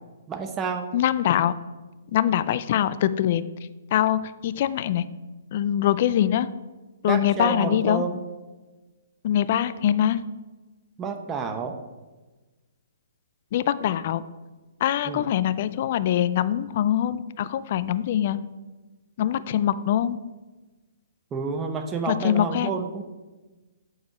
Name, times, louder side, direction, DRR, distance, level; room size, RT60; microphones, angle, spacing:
voice 1, 0.3-0.9 7.1-8.2 11.0-11.8 15.0-15.3 21.3-23.0, right 5 dB, 20° right, 5 dB, 0.8 m, -29 dB
voice 2, 0.9-1.6 2.1-3.4 3.9-5.1 5.5-6.5 7.0-8.0 9.2-10.2 13.5-14.2 14.8-18.4 19.2-20.2 22.1-22.7, left 11 dB, 50° left, 15 dB, 0.4 m, -23 dB
7.4 x 4.7 x 5.6 m, 1.2 s
hypercardioid pair, 130°, 0 cm